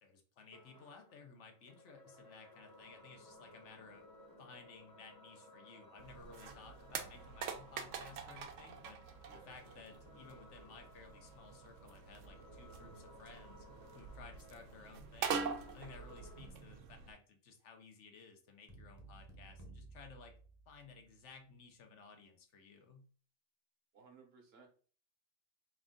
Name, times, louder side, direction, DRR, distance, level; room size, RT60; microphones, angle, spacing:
voice 1, 0.0-4.0 4.4-9.0 9.3-13.6 13.9-15.5 15.7-20.4 20.7-23.1, left 4 dB, 75° left, 5 dB, 1.1 m, -57 dB
sound 1, 0.5-16.5, left 1 dB, 20° left, 0.7 m, -60 dB
sound 2, 6.0-17.1, right 6 dB, 85° right, 0.9 m, -45 dB
sound 3, 18.7-21.2, right 2 dB, 15° right, 0.7 m, -56 dB
voice 2, 23.9-24.7, right 5 dB, 60° right, 3 dB, 1.0 m, -60 dB
3.6 x 2.5 x 3.6 m, 0.41 s
omnidirectional pair, 1.2 m